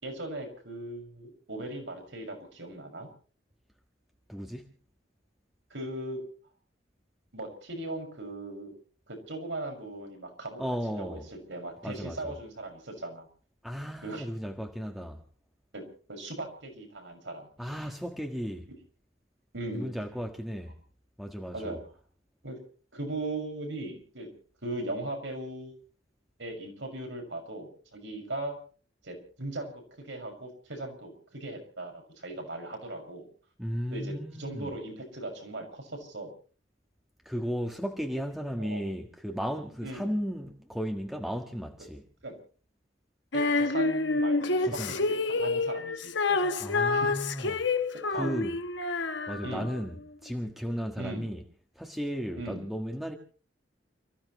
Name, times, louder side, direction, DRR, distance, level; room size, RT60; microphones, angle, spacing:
voice 1, 0.0-3.1 5.7-6.2 7.3-8.7 9.1-10.6 10.9-11.2 11.5-13.3 14.0-14.2 15.7-17.5 19.5-19.9 21.5-21.8 22.4-22.6 22.9-24.3 24.6-25.7 26.4-28.6 29.0-29.7 30.0-33.3 33.9-36.3 38.6-38.8 39.8-40.1 42.2-42.3 43.3-46.5 46.9-47.1 47.9-48.3 49.4-49.8 51.0-51.3 52.4-52.7, right 2 dB, 75° right, 6.2 m, -38 dB
voice 2, 4.3-4.7 10.6-11.3 11.8-12.4 13.6-15.2 17.6-18.7 19.7-20.7 21.2-21.8 33.6-34.7 37.2-42.0 44.6-45.0 46.6-47.6 48.1-48.6 49.3-50.0 50.2-51.4 51.7-53.1, equal, ahead, 1.6 m, -35 dB
Female singing, 43.3-49.8, left 3 dB, 70° left, 1.3 m, -28 dB
29.5 x 15.5 x 3.2 m
head